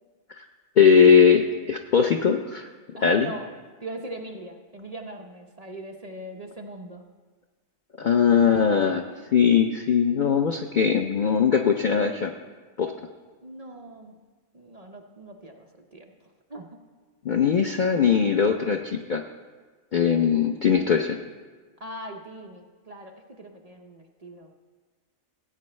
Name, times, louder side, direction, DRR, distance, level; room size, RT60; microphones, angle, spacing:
voice 1, 0.8-2.7 3.0-3.3 8.0-9.0 9.3-12.3 12.8-12.9 17.2-19.2 19.9-21.2, left 6 dB, 85° left, 5 dB, 0.4 m, -20 dB
voice 2, 2.9-3.5 3.8-7.0 13.4-14.1 14.5-15.7 15.9-16.1 16.5-16.7 21.8-24.5, right 1 dB, 40° right, 2 dB, 0.5 m, -40 dB
17.5 x 8.6 x 3.2 m, 1.4 s
omnidirectional pair, 1.5 m